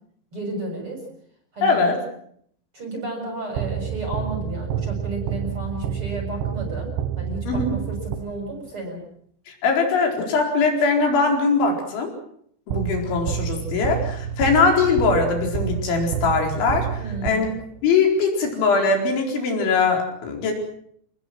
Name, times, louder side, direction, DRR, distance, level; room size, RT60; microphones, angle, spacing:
voice 1, 0.3-1.0 1.5-1.8 2.7-9.0 17.0-17.4, right 1 dB, 25° right, 2 dB, 7.5 m, -32 dB
voice 2, 1.6-2.0 7.5-7.7 9.5-12.1 12.7-17.5 17.8-20.5, left 4 dB, 65° left, 2 dB, 6.7 m, -21 dB
sound 1, 3.6-8.7 12.7-17.9, right 8 dB, 70° right, 2.9 m, -29 dB
29.0 x 20.5 x 6.2 m, 0.66 s
omnidirectional pair, 5.9 m